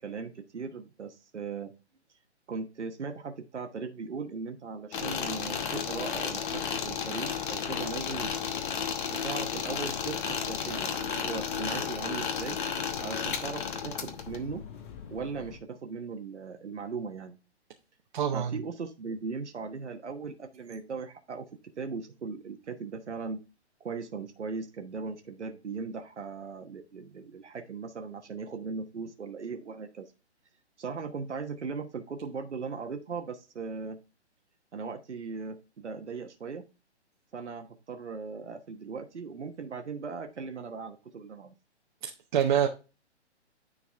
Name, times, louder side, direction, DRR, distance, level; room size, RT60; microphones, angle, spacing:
voice 1, 0.0-1.7 2.5-8.3 9.1-12.6 13.0-14.6 15.1-17.4 18.3-21.5 21.8-23.4 23.8-30.1 30.8-34.0 34.7-36.6 37.3-41.5, right 5 dB, 80° right, 1.2 m, -38 dB
sound 1, 4.9-15.6, left 7 dB, 45° left, 1.1 m, -33 dB
voice 2, 18.1-18.6 42.0-42.7, right 9 dB, 45° right, 0.9 m, -26 dB
9.9 x 4.1 x 3.5 m
figure-of-eight pair, 135°, 35 cm